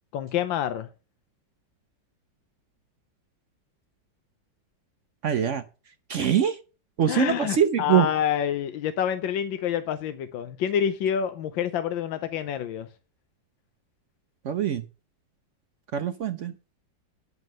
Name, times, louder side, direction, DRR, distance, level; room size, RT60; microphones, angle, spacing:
voice 1, 0.1-0.9 7.1-12.9, left 9 dB, 90° left, 1.5 m, -27 dB
voice 2, 5.2-5.6 6.1-6.6 7.0-8.1 14.4-14.8 15.9-16.5, right 9 dB, 75° right, 0.7 m, -23 dB
9.3 x 6.3 x 6.3 m
omnidirectional pair, 2.1 m